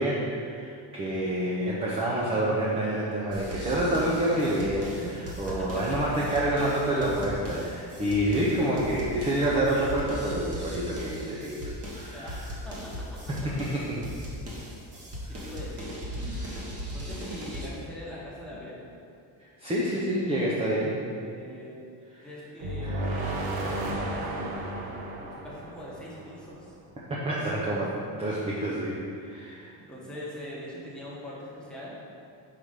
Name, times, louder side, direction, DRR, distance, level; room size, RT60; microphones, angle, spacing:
voice 1, 0.0-12.4 13.3-14.1 19.6-20.9 22.1-22.3 22.8-23.0 27.2-27.9 28.2-29.7, right 1 dB, 15° right, -5 dB, 0.5 m, -28 dB
Dynamic Drums Loop, 3.3-17.7, equal, 35° right, 1.2 m, -38 dB
voice 2, 5.5-6.1 12.1-13.2 15.3-16.4 16.9-18.8 21.2-21.8 22.2-25.0 25.3-26.7 29.8-32.0, equal, ahead, -7 dB, 1.1 m, -42 dB
sound 1, 22.6-26.7, right 1 dB, 55° right, 0.9 m, -33 dB
5.6 x 4.7 x 5.0 m, 2.5 s
cardioid pair, 175°, 43 cm